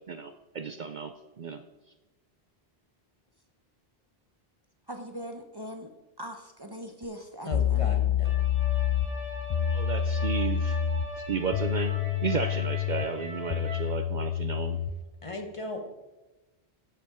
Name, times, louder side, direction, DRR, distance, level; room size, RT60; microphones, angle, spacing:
voice 1, 0.1-1.6 9.7-10.8 11.3-11.9 12.2-14.8, right 5 dB, 55° right, 8 dB, 0.6 m, -33 dB
voice 2, 4.9-5.9 6.2-7.9, equal, 25° right, 5 dB, 0.8 m, -40 dB
sound 1, 7.0-7.1 7.5-15.0, left 9 dB, 50° left, 0.5 m, -28 dB
voice 3, 7.4-8.5 15.2-15.9, left 2 dB, 30° left, 4 dB, 1.1 m, -37 dB
sound 2, 8.2-13.9, left 2 dB, 10° left, 1.6 m, -40 dB
9.9 x 8.2 x 4.8 m, 1.1 s
omnidirectional pair, 1.1 m